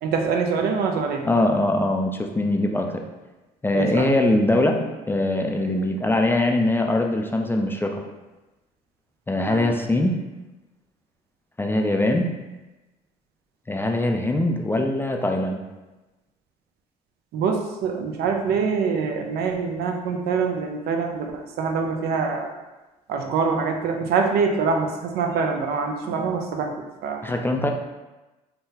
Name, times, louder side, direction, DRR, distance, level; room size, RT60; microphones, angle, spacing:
voice 1, 0.0-1.3 3.7-4.1 5.7-5.8 9.3-9.7 17.3-22.5 23.1-27.2, right 5 dB, 65° right, 3 dB, 0.5 m, -25 dB
voice 2, 1.2-3.0 3.6-8.0 9.3-10.2 11.6-12.3 13.7-15.6 26.1-26.2 27.2-27.7, left 1 dB, 10° left, 3 dB, 0.3 m, -22 dB
3.7 x 2.1 x 2.7 m, 1.1 s
supercardioid pair, 70°, 18 cm